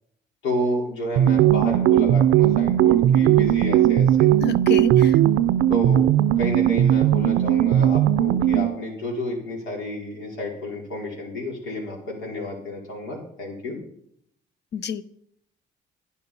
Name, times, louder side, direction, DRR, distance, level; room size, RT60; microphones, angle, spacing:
voice 1, 0.4-4.3 5.7-6.1 6.4-13.8, left 1 dB, 90° left, -1 dB, 4.9 m, -30 dB
sound 1, 1.2-8.8, right 11 dB, 90° right, 0.5 m, -18 dB
voice 2, 4.4-5.2 14.7-15.0, left 6 dB, 60° left, 15 dB, 0.8 m, -29 dB
11.0 x 10.5 x 5.5 m, 0.68 s
cardioid pair, 90°, 20 cm